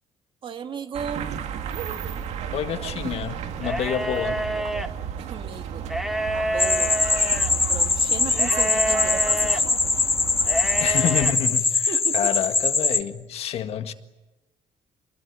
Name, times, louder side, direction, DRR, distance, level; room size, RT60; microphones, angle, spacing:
voice 1, 0.4-1.3 5.2-5.9 6.3-9.8 11.5-11.6 11.9-12.3, right 7 dB, 45° right, 1.9 m, -36 dB
sound 1, 0.9-11.4, right 8 dB, 75° right, 2.1 m, -33 dB
voice 2, 2.5-4.4 10.8-13.9, left 9 dB, 60° left, 1.7 m, -28 dB
sound 2, 3.6-4.9 5.8-7.5 8.4-9.6 10.4-11.3, right 1 dB, ahead, 1.4 m, -28 dB
sound 3, 6.6-13.0, left 3 dB, 20° left, 1.4 m, -22 dB
27.5 x 21.0 x 9.7 m
cardioid pair, 150°, 12 cm